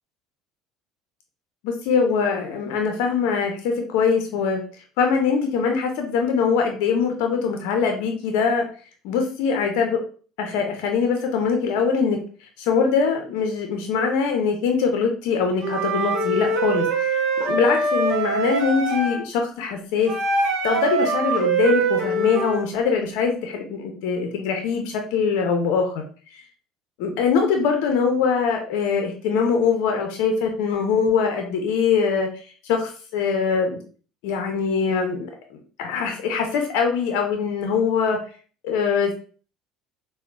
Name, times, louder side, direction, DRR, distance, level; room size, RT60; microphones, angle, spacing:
voice 1, 1.6-4.6 5.0-8.7 9.0-10.0 10.4-12.2 12.6-20.1 20.6-26.0 27.0-32.3 32.7-33.8 34.2-35.3 35.5-38.2 38.6-39.1, left 5 dB, 75° left, 4 dB, 0.5 m, -22 dB
Wind instrument woodwind instrument, 15.6-19.2 20.1-22.6, right 3 dB, 70° right, 0.6 m, -23 dB
3.6 x 2.1 x 2.3 m, 0.39 s
hypercardioid pair, 75°, 0 cm